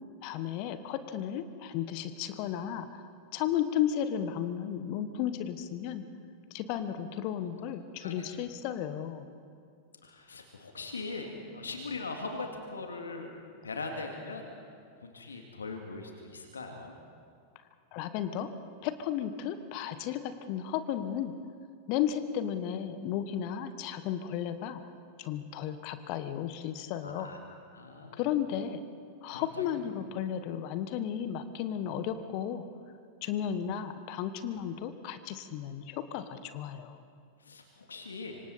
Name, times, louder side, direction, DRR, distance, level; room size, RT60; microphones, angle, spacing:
voice 1, 0.2-3.0 3.3-6.1 6.5-9.3 17.9-18.5 18.8-21.3 21.9-24.8 25.2-27.3 28.1-28.8 29.2-32.6 33.2-37.0, left 10 dB, 45° left, 11 dB, 1.3 m, -34 dB
voice 2, 10.0-13.3 13.6-14.5 15.0-16.9 27.0-28.3 29.3-29.7 37.4-38.4, left 3 dB, 75° left, 3 dB, 2.1 m, -41 dB
26.0 x 25.5 x 4.2 m, 2.3 s
figure-of-eight pair, 90°, 0 cm